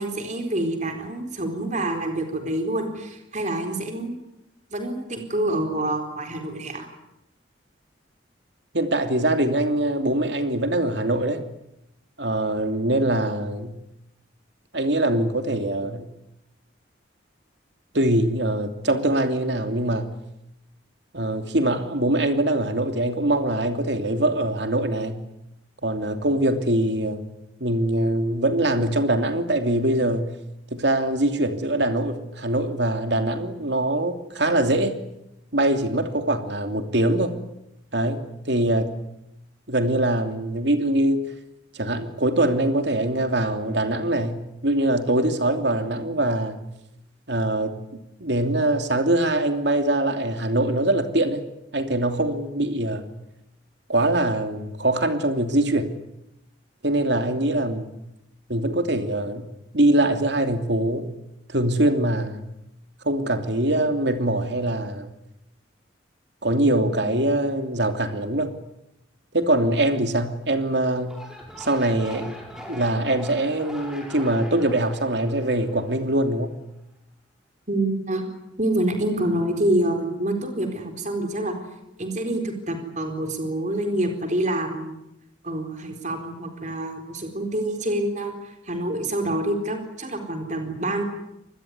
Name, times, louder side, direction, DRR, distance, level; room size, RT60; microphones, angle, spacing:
voice 1, 0.0-4.1 4.7-6.9 77.7-78.2 78.6-81.6 82.0-85.0 85.4-91.0, right 1 dB, 40° right, 5 dB, 4.2 m, -27 dB
voice 2, 8.7-11.4 12.2-13.8 14.7-16.1 17.9-20.1 21.1-25.2 25.8-27.2 27.6-30.3 30.7-34.9 35.5-37.3 37.9-38.9 39.7-41.3 41.7-46.6 47.3-47.8 48.2-51.4 51.7-53.1 53.9-55.9 56.8-57.9 58.5-59.5 59.7-61.1 61.5-62.5 63.0-65.1 66.4-68.5 69.3-71.1 71.6-72.4 72.7-76.5, right 1 dB, 60° right, 7 dB, 2.9 m, -23 dB
sound 1, 71.0-76.3, left 1 dB, 5° right, 5.7 m, -41 dB
26.0 x 21.0 x 9.6 m, 0.87 s
head